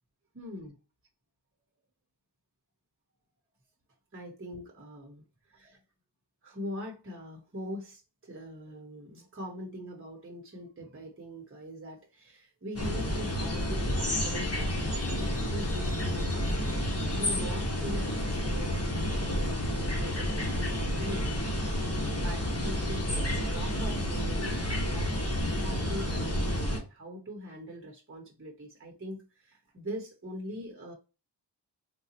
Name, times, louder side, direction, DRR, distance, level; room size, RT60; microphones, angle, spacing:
voice 1, 0.3-0.8 4.1-5.8 6.4-25.2 25.5-30.9, equal, 30° right, 1.0 m, -42 dB
sound 1, 12.8-26.8, left 1 dB, 35° left, 1.2 m, -30 dB
3.7 x 2.3 x 2.8 m
wide cardioid pair, 75°, 42 cm